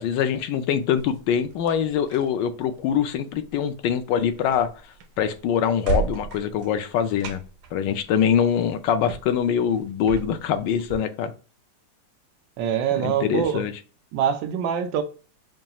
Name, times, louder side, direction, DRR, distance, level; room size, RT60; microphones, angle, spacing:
voice 1, 0.0-4.7 5.2-7.4 7.7-11.3 12.9-13.7, left 8 dB, 80° left, 1.3 m, -24 dB
sound 1, 1.0-11.0, right 5 dB, 70° right, 1.1 m, -36 dB
voice 2, 12.6-13.6 14.1-15.0, right 8 dB, 90° right, 1.4 m, -24 dB
5.3 x 2.3 x 2.8 m
omnidirectional pair, 2.0 m